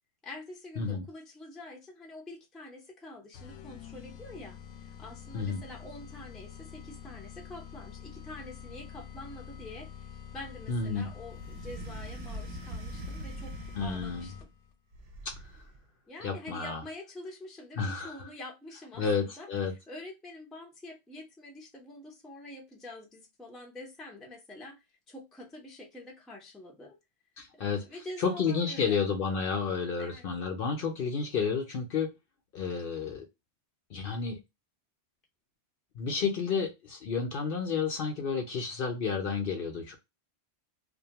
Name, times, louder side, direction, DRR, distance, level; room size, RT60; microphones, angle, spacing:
voice 1, 0.2-14.3 16.1-19.5 19.9-27.0 27.5-29.0 30.0-30.3, left 1 dB, ahead, 0.4 m, -46 dB
sound 1, 3.3-14.7, left 8 dB, 85° left, 0.9 m, -47 dB
voice 2, 10.7-11.1 13.8-14.3 15.2-15.6 16.2-16.8 17.8-18.3 19.0-19.7 27.4-27.8 28.2-32.1 32.5-33.3 33.9-34.4 35.9-40.0, left 5 dB, 60° left, 0.7 m, -31 dB
sound 2, 11.3-14.4 14.9-15.8, right 1 dB, 65° right, 0.9 m, -42 dB
2.5 x 2.2 x 2.8 m
omnidirectional pair, 1.2 m